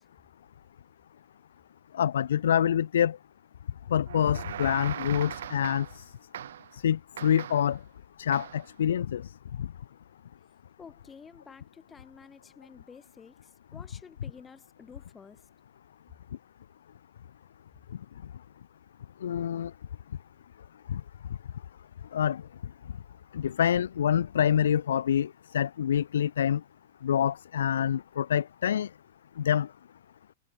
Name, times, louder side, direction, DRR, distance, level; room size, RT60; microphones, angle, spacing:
voice 1, 1.9-3.2 3.9-6.0 6.7-7.8 8.2-9.3 9.6-9.7 19.2-19.7 20.9-21.0 22.1-22.4 23.3-26.6 27.0-28.9 29.4-29.7, left 9 dB, 90° left, 0.5 m, -26 dB
sound 1, 4.1-6.0 6.3-6.8 7.2-7.8 8.3-8.7, right 10 dB, 85° right, 5.4 m, -40 dB
voice 2, 10.8-13.3 13.7-15.4, left 6 dB, 15° left, 4.5 m, -50 dB
hypercardioid pair, 140°, 0 cm